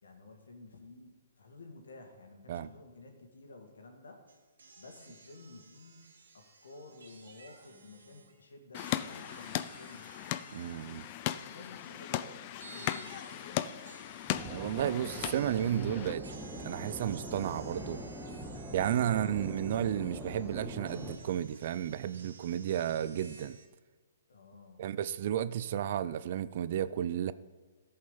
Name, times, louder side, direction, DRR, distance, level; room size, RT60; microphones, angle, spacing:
voice 1, 0.0-4.2 4.8-6.1 6.3-10.1 11.4-13.3 19.1-19.4 24.3-24.8, left 3 dB, 85° left, 3 dB, 2.1 m, -52 dB
sound 1, 4.3-8.4 8.7-23.7, right 4 dB, 80° right, 2.1 m, -55 dB
sound 2, 8.7-16.1, left 13 dB, 35° left, 0.4 m, -38 dB
voice 2, 10.5-11.1 14.5-16.2 16.6-18.0 18.7-23.6 24.8-27.3, right 10 dB, 50° right, 16 dB, 0.5 m, -32 dB
sound 3, 14.3-21.2, right 1 dB, 5° right, 1.4 m, -43 dB
13.5 x 5.6 x 5.5 m, 1.3 s
hypercardioid pair, 140°, 0 cm